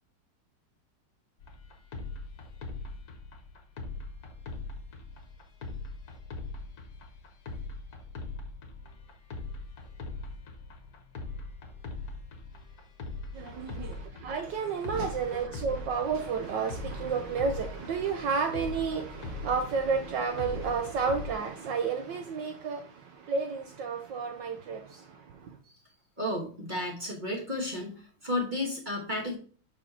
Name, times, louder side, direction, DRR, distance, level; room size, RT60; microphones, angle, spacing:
sound 1, 1.4-21.3, left 3 dB, 55° left, 1.3 m, -41 dB
voice 1, 13.4-14.0 14.2-22.8 23.3-24.8, right 5 dB, 70° right, 1.2 m, -31 dB
voice 2, 26.2-27.9 28.2-29.4, left 1 dB, 30° right, 1.0 m, -32 dB
5.4 x 4.9 x 4.1 m
omnidirectional pair, 2.4 m